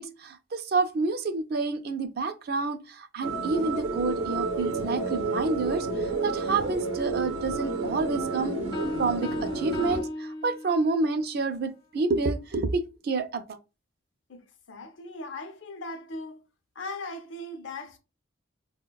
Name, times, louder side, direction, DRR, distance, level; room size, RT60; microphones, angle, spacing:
voice 1, 0.0-5.9 6.2-8.5 9.0-13.4, right 3 dB, 50° right, 0.3 m, -28 dB
sound 1, 3.2-10.0, right 3 dB, 90° right, 0.7 m, -30 dB
sound 2, 8.7-11.1, left 1 dB, 20° left, 0.3 m, -35 dB
voice 2, 14.7-16.4 16.8-18.0, left 2 dB, 70° left, 0.6 m, -38 dB
4.7 x 2.1 x 2.2 m
head